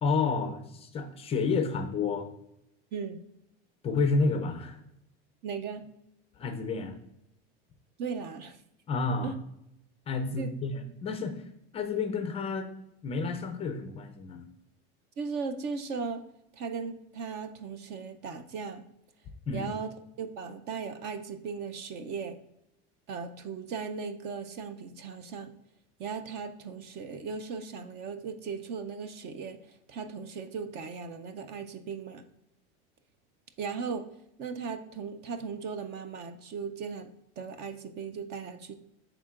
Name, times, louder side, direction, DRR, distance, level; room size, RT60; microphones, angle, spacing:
voice 1, 0.0-2.3 3.8-4.8 6.4-7.0 8.9-9.3 10.1-11.4 11.7-12.7 13.0-14.4 19.5-19.7, left 4 dB, 20° left, 6 dB, 0.4 m, -30 dB
voice 2, 5.4-5.8 8.0-8.6 9.2-9.4 10.4-10.5 15.2-16.2 16.6-18.8 19.5-19.9 20.2-22.4 23.1-25.5 26.0-29.6 29.9-32.2 33.6-34.1 34.4-37.1 37.4-38.7, right 5 dB, 35° right, 9 dB, 0.4 m, -37 dB
10.5 x 3.8 x 2.4 m, 0.83 s
cardioid pair, 160°, 29 cm